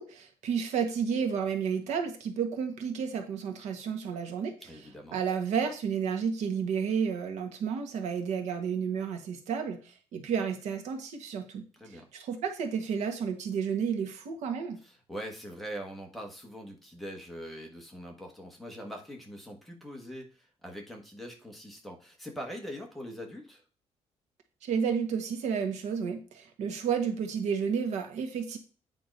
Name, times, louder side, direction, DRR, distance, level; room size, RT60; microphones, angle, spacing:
voice 1, 0.0-4.5 5.1-11.6 11.9-14.8 24.6-28.6, right 6 dB, 75° right, 5 dB, 1.5 m, -31 dB
voice 2, 4.6-5.2 11.7-12.1 14.8-23.6, equal, ahead, 0 dB, 1.3 m, -42 dB
8.8 x 3.7 x 5.2 m, 0.36 s
cardioid pair, 180°, 12 cm